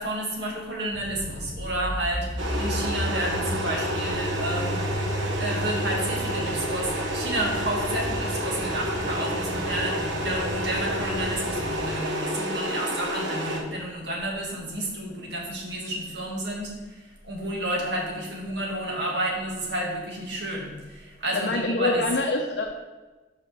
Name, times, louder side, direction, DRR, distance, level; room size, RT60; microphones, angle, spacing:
voice 1, 0.0-4.9 5.4-22.1, right 1 dB, 65° right, -2 dB, 1.9 m, -31 dB
sound 1, 0.9-11.8, equal, 25° left, 0.8 m, -33 dB
Kettle Cycle, 2.4-13.6, equal, 85° right, 1.1 m, -30 dB
voice 2, 21.3-22.7, left 2 dB, 65° left, 0 dB, 0.7 m, -25 dB
5.5 x 5.0 x 6.2 m, 1.2 s
head